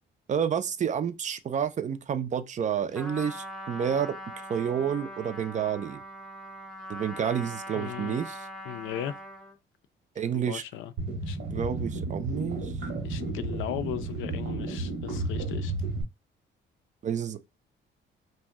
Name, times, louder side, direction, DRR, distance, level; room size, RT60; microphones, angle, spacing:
voice 1, 0.3-4.2 4.5-6.0 6.9-8.5 10.2-10.6 11.5-12.7 17.0-17.4, right 8 dB, 40° right, 0.4 m, -29 dB
Trumpet, 2.9-9.6, equal, ahead, 0.7 m, -41 dB
voice 2, 7.7-8.2 8.7-9.2 10.5-10.9 11.3-11.4 13.0-15.7, left 11 dB, 85° left, 0.4 m, -37 dB
sound 1, 11.0-16.0, right 2 dB, 70° right, 0.9 m, -32 dB
2.6 x 2.1 x 3.4 m
cardioid pair, 90°, 20 cm